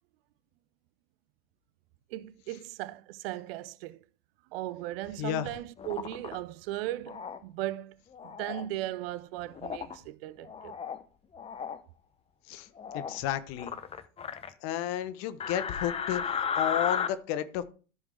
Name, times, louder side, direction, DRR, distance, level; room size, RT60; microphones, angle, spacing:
voice 1, 2.1-4.0 4.5-8.0 8.2-10.8, right 15 dB, 50° right, 0.6 m, -37 dB
voice 2, 5.2-5.5 12.5-12.7 12.9-13.7 14.6-17.6, left 11 dB, 45° left, 1.0 m, -32 dB
sound 1, 5.8-6.4 7.1-7.4 8.1-8.7 9.6-10.0 10.4-11.0 11.3-11.8 12.8-13.2 13.6-14.5 15.4-17.1, left 7 dB, 15° left, 0.7 m, -34 dB
13.5 x 5.1 x 3.3 m
hypercardioid pair, 90°, 38 cm